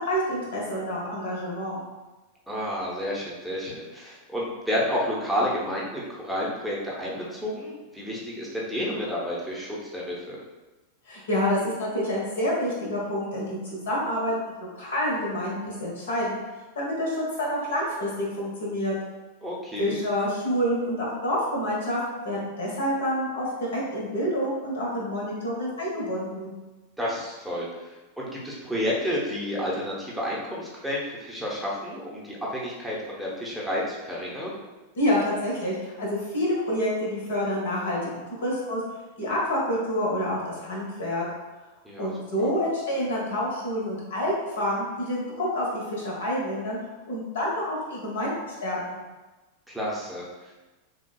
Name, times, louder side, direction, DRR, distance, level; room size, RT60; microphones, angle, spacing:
voice 1, 0.1-1.8 11.1-14.5 14.8-16.4 16.7-18.9 19.8-26.5 35.0-38.8 39.2-41.2 42.0-46.8 47.1-49.0, equal, 60° left, -4 dB, 1.1 m, -28 dB
voice 2, 2.5-10.4 19.4-20.0 27.0-34.6 41.8-42.1 42.4-42.5 49.7-50.5, equal, ahead, -6 dB, 0.8 m, -30 dB
6.0 x 2.3 x 2.3 m, 1.2 s
figure-of-eight pair, 90°, 0 cm